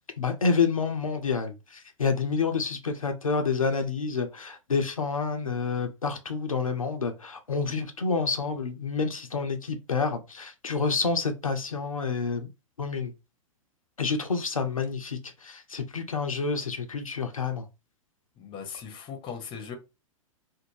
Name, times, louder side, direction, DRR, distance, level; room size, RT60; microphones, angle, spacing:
voice 1, 0.2-12.5 12.8-13.1 14.0-17.7, left 5 dB, 90° left, 0.4 m, -28 dB
voice 2, 18.4-19.8, left 6 dB, 30° left, 0.7 m, -39 dB
2.5 x 2.1 x 3.1 m
figure-of-eight pair, 100°, 17 cm